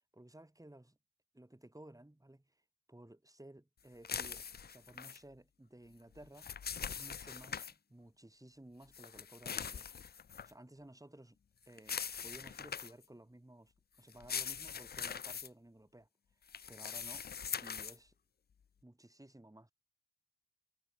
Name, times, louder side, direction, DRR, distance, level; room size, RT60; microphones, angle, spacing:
voice 1, 0.1-1.0 1.3-2.5 2.9-6.6 6.9-9.9 10.4-11.4 11.7-16.1 16.7-17.3 17.6-18.1 18.8-19.7, right 1 dB, 10° right, 6.1 m, -56 dB
sound 1, 4.0-5.2 6.1-7.7 8.9-10.5 11.8-13.0 14.1-15.5 16.5-18.0, left 7 dB, 25° left, 0.5 m, -42 dB
cardioid pair, 70°, 37 cm